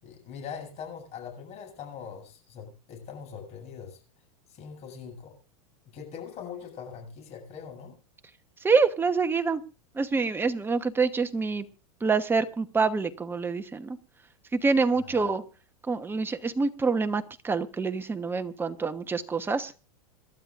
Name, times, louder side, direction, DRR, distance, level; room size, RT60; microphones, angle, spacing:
voice 1, 0.0-4.0 4.5-5.3 5.8-8.0 15.0-15.3, left 7 dB, 35° left, 3 dB, 7.6 m, -42 dB
voice 2, 8.6-9.6 9.9-11.6 12.0-14.0 14.5-15.4 15.9-19.7, right 4 dB, 10° right, 9 dB, 1.1 m, -26 dB
27.5 x 12.0 x 2.6 m, 0.32 s
supercardioid pair, 130°, 19 cm